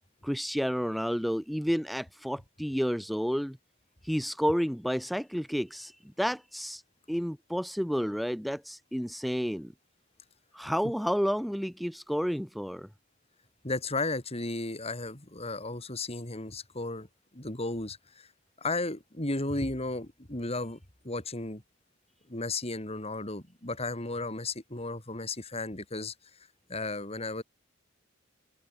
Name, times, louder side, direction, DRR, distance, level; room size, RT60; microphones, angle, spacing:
voice 1, 0.2-3.6 4.0-6.8 7.1-9.7 10.5-12.9, equal, ahead, 1.0 m, -30 dB
voice 2, 13.6-17.1 17.3-18.3 18.6-20.8 21.0-21.6 22.3-26.1 26.7-27.4, left 2 dB, 30° left, 3.5 m, -34 dB
open air
head